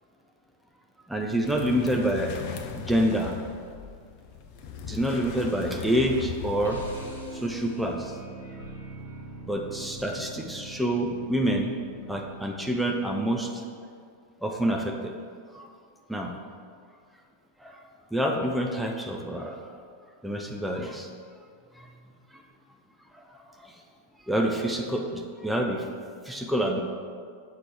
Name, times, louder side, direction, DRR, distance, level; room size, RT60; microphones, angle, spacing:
voice 1, 1.1-2.3 2.7-3.3 4.9-6.8 7.3-8.2 9.5-11.8 12.1-13.6 14.4-15.1 15.5-15.7 16.1-16.3 17.6-17.8 18.1-19.8 20.2-21.1 21.8-21.9 23.1-23.2 23.6-23.7 24.3-25.9 26.2-26.8, right 1 dB, ahead, 1 dB, 0.6 m, -27 dB
sound 1, 1.4-7.1, left 6 dB, 45° left, 0.5 m, -38 dB
sound 2, 6.6-13.1, right 1 dB, 80° left, 1.2 m, -42 dB
7.4 x 5.9 x 3.3 m, 2.1 s
figure-of-eight pair, 90°, 0 cm